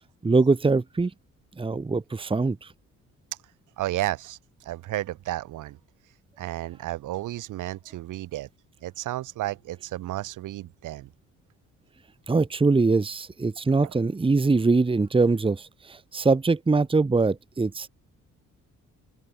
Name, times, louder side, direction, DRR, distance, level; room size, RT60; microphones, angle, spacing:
voice 1, 0.2-1.1 1.6-2.6 12.3-17.9, right 3 dB, 15° right, 1.2 m, -22 dB
voice 2, 3.8-5.8 6.4-8.5 8.8-11.1 13.8-14.0, right 15 dB, 85° right, 5.4 m, -32 dB
open air
cardioid pair, 90°, 30 cm